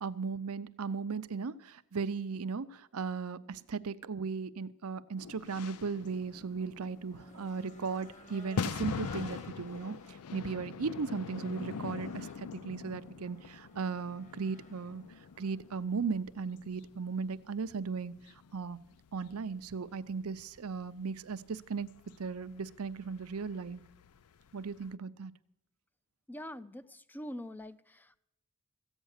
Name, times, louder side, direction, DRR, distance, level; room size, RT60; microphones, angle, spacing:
voice 1, 0.0-10.0 10.3-15.0 15.4-18.1 18.5-18.8 19.1-21.9 22.2-23.8 24.5-25.3, right 5 dB, 70° right, 13 dB, 0.6 m, -37 dB
sound 1, 5.2-24.9, left 6 dB, 85° left, 0.5 m, -44 dB
Race car auto racing / Engine, 6.0-16.0, left 1 dB, 35° left, 1.8 m, -57 dB
voice 2, 26.3-28.2, equal, 10° left, 15 dB, 0.5 m, -44 dB
14.5 x 9.0 x 6.5 m, 0.82 s
head